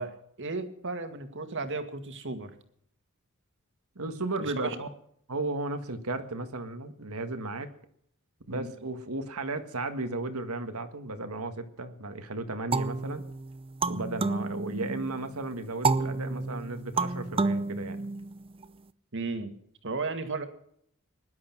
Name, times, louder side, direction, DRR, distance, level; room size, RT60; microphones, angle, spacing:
voice 1, 0.0-2.5 4.4-4.8 8.5-8.7 19.1-19.5 19.8-20.4, right 3 dB, 55° right, 8 dB, 2.1 m, -34 dB
voice 2, 4.0-4.9 5.3-7.7 8.5-13.2 13.9-18.0, right 2 dB, 80° right, 8 dB, 1.8 m, -34 dB
sound 1, 12.7-15.2 15.8-18.6, right 3 dB, 25° right, 0.6 m, -30 dB
20.0 x 11.5 x 6.0 m, 0.67 s
head